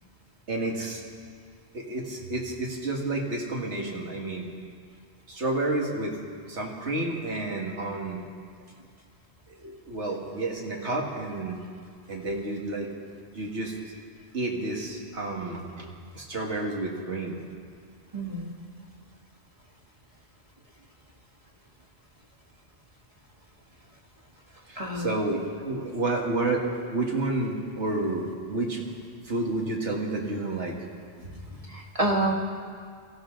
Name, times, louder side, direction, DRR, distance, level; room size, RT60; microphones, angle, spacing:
voice 1, 0.5-1.0 1.7-4.5 5.3-6.1 6.5-8.2 9.5-11.6 12.1-12.9 13.3-13.7 14.3-15.9 16.2-17.4 24.7-26.7 26.9-28.9 29.2-30.8, right 2 dB, 85° right, -1 dB, 2.3 m, -30 dB
voice 2, 18.1-18.5 24.8-25.1 31.7-32.3, right 1 dB, 30° right, -1 dB, 1.7 m, -27 dB
22.5 x 15.5 x 3.9 m, 2.1 s
omnidirectional pair, 1.1 m